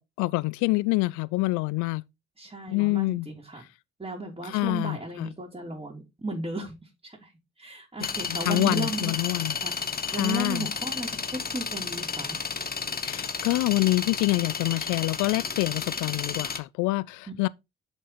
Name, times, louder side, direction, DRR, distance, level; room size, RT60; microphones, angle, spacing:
voice 1, 0.0-2.0 2.7-3.3 4.4-5.3 8.0-9.5 10.1-10.7 13.0-17.5, left 23 dB, 70° left, 0.5 m, -26 dB
voice 2, 2.4-3.6 4.0-6.8 7.0-7.3 7.6-9.1 9.6-9.7 10.1-12.4 17.3-17.5, right 2 dB, 20° right, 3.4 m, -35 dB
sound 1, 8.0-16.6, left 5 dB, 30° left, 1.3 m, -32 dB
7.1 x 5.4 x 4.1 m
hypercardioid pair, 45°, 31 cm